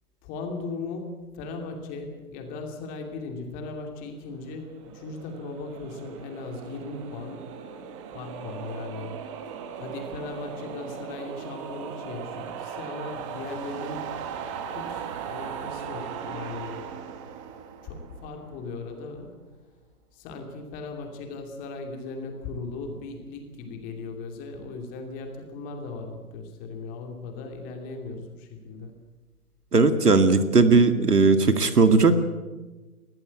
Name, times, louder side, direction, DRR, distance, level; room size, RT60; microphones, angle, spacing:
voice 1, 0.2-7.4 8.1-9.2 9.8-14.1 14.7-16.9 17.8-19.3 20.1-28.9, left 3 dB, 20° left, 4 dB, 2.7 m, -37 dB
sound 1, 4.5-18.8, right 7 dB, 20° right, 1.5 m, -38 dB
voice 2, 29.7-32.2, right 4 dB, 85° right, 10 dB, 2.2 m, -18 dB
21.0 x 14.0 x 9.7 m, 1.2 s
hypercardioid pair, 145°, 45 cm